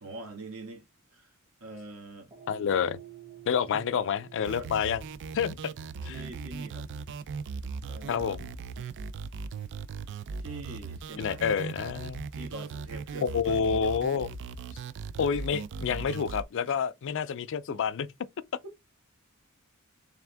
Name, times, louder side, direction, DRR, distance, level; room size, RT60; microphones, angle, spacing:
voice 1, 0.0-1.3 1.6-2.3 3.7-3.8 4.6-4.7 6.0-6.9 7.9-8.4 10.4-11.6 12.2-13.7 16.7-16.8 17.7-17.8, right 2 dB, 80° right, 1.5 m, -44 dB
sound 1, 2.3-10.7, right 9 dB, 20° right, 1.1 m, -53 dB
voice 2, 2.5-3.0 3.5-5.0 5.3-5.6 6.0-6.1 8.1-8.5 11.2-12.3 13.2-14.3 15.2-18.1, left 7 dB, 60° left, 0.4 m, -28 dB
sound 2, 4.4-16.4, right 5 dB, 55° right, 0.3 m, -39 dB
3.5 x 3.3 x 3.3 m
head